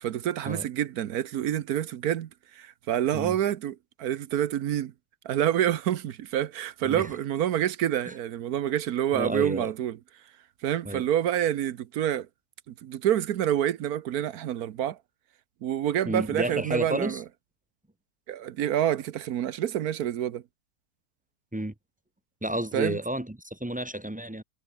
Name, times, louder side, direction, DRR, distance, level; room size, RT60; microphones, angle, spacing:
voice 1, 0.0-4.9 5.2-10.0 10.6-12.3 12.7-15.0 15.6-17.2 18.3-20.4 22.7-23.0, right 11 dB, 65° right, 1.2 m, -27 dB
voice 2, 9.1-9.7 10.8-11.1 16.1-17.2 21.5-21.7 22.4-24.4, right 1 dB, 5° right, 0.6 m, -31 dB
omnidirectional pair, 1.8 m